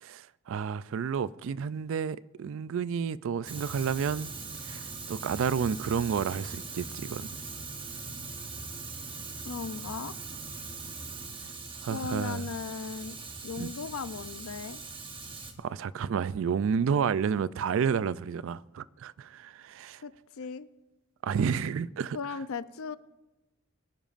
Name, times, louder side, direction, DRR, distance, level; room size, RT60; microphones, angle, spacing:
voice 1, 0.0-4.3 4.7-7.3 11.8-12.5 13.6-13.7 15.6-20.0 21.2-22.2, right 6 dB, 60° right, 0.3 m, -30 dB
Fire, 3.5-15.5, right 4 dB, 25° right, 1.1 m, -41 dB
voice 2, 9.5-10.1 11.9-13.2 13.4-14.8 20.0-20.7 22.1-23.0, left 5 dB, 70° left, 0.5 m, -37 dB
23.5 x 10.5 x 2.5 m
head